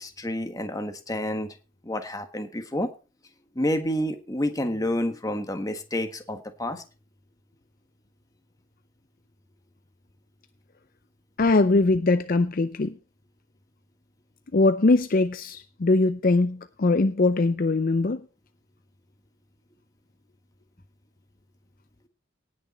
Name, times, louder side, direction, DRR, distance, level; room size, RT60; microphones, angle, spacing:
voice 1, 0.0-1.5 1.8-2.9 3.5-6.8, left 1 dB, 20° left, 1.4 m, -29 dB
voice 2, 11.4-13.0 14.5-18.2, left 3 dB, 45° left, 0.5 m, -21 dB
18.5 x 6.7 x 4.2 m
head